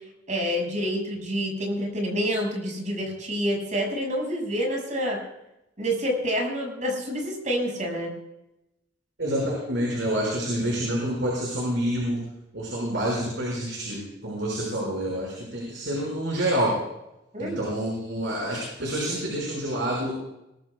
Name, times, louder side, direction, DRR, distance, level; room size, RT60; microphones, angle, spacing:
voice 1, 0.3-5.2 5.8-8.1 17.3-17.6, equal, 40° right, 0 dB, 6.3 m, -28 dB
voice 2, 9.2-12.2 12.5-16.7 17.4-20.1, right 1 dB, 75° right, -4 dB, 5.7 m, -28 dB
23.0 x 18.0 x 2.4 m, 0.88 s
head